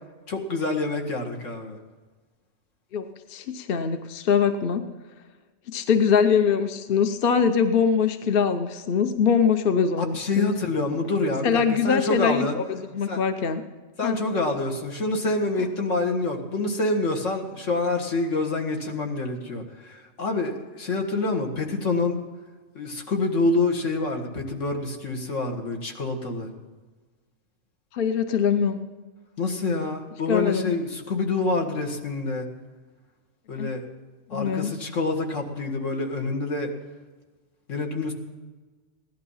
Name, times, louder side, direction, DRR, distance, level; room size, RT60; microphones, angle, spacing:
voice 1, 0.3-1.8 10.0-12.6 13.1-13.2 14.0-22.2 22.8-26.5 29.4-32.5 33.5-33.8 34.3-36.7 37.7-38.1, left 3 dB, 75° left, 2 dB, 2.0 m, -27 dB
voice 2, 3.3-4.9 5.7-10.5 11.4-13.6 14.0-14.2 27.9-28.8 30.3-30.7 33.6-33.7 34.3-34.7, left 6 dB, 50° left, 8 dB, 0.9 m, -23 dB
16.5 x 11.5 x 5.6 m, 1.3 s
omnidirectional pair, 1.3 m